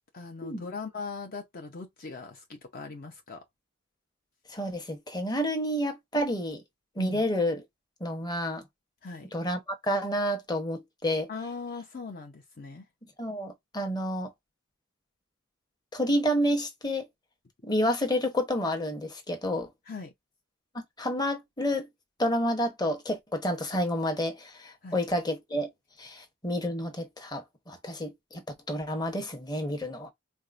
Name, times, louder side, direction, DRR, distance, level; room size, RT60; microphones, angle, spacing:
voice 1, 0.1-3.4 7.0-7.2 9.0-9.3 11.3-12.9 19.9-20.1 24.8-25.0, left 4 dB, 45° left, 0.6 m, -40 dB
voice 2, 4.5-6.6 7.0-7.6 8.0-8.6 9.3-11.3 13.2-14.3 15.9-17.1 17.6-19.7 21.0-21.9 22.2-25.7 26.0-28.4 28.7-30.1, equal, 20° left, 1.0 m, -29 dB
4.6 x 2.1 x 2.5 m
head